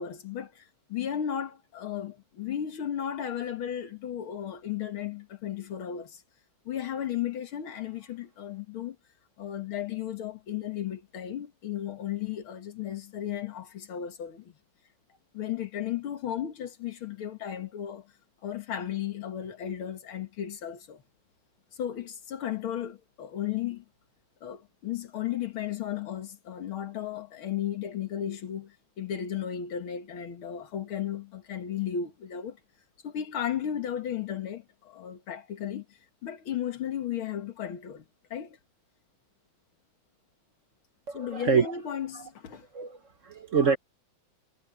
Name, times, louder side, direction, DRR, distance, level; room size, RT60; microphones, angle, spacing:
voice 1, 0.0-6.2 6.7-9.0 9.4-14.5 15.3-18.1 18.4-21.0 21.8-23.8 24.4-32.6 33.0-38.0 38.3-38.6 41.1-42.7, left 10 dB, 90° left, 2.6 m, -34 dB
voice 2, 41.1-41.7 42.1-42.2 42.7-43.8, right 6 dB, 45° right, 1.3 m, -26 dB
omnidirectional pair, 2.2 m